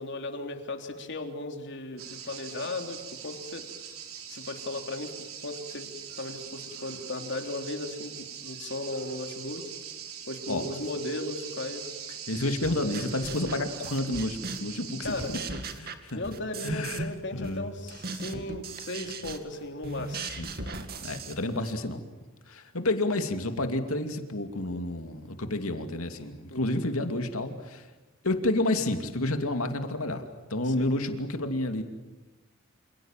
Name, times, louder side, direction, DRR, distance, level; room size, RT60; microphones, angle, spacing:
voice 1, 0.0-3.6 4.3-5.1 5.4-5.9 6.2-9.7 10.3-11.9 15.0-15.3 16.1-20.2 26.5-26.8 30.7-30.9, left 2 dB, 60° left, 4 dB, 3.4 m, -36 dB
sound 1, 2.0-15.4, right 8 dB, 90° right, 3.6 m, -42 dB
voice 2, 12.3-15.4 15.8-16.2 16.6-17.1 17.3-17.7 20.4-22.0 22.5-27.9 28.2-30.2 30.5-31.8, left 2 dB, 85° left, 6 dB, 2.7 m, -30 dB
sound 2, 12.6-14.8 15.0-17.2 17.4-21.8, right 3 dB, 45° right, 2.3 m, -38 dB
28.5 x 27.5 x 7.5 m, 1.1 s
head